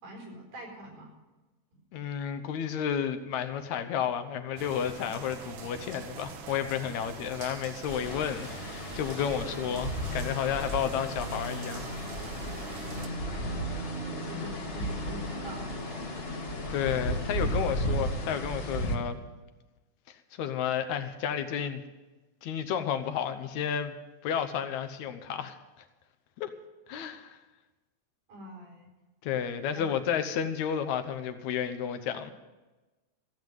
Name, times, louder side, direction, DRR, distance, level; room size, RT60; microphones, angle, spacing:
voice 1, 0.0-1.1 13.2-13.9 14.2-15.7 28.3-28.9 29.7-30.0, right 1 dB, 85° right, 0 dB, 6.0 m, -45 dB
voice 2, 1.9-11.9 13.7-13.9 14.4-14.5 16.2-16.3 16.7-19.2 20.1-21.8 22.4-23.9 24.2-25.6 26.4-26.5 26.9-27.4 29.2-32.3, left 8 dB, 75° left, 9 dB, 2.2 m, -32 dB
sound 1, 4.6-13.1, right 6 dB, 60° right, 1.7 m, -44 dB
sound 2, 7.9-19.0, equal, 30° left, 1.1 m, -34 dB
15.0 x 7.9 x 9.1 m, 1.2 s
omnidirectional pair, 3.4 m